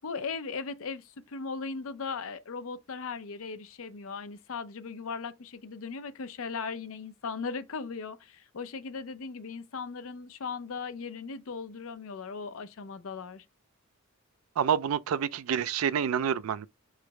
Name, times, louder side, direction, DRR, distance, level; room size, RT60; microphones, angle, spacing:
voice 1, 0.0-13.4, left 5 dB, 75° left, 0.5 m, -38 dB
voice 2, 14.6-16.7, right 8 dB, 85° right, 0.4 m, -28 dB
4.8 x 2.0 x 4.7 m
head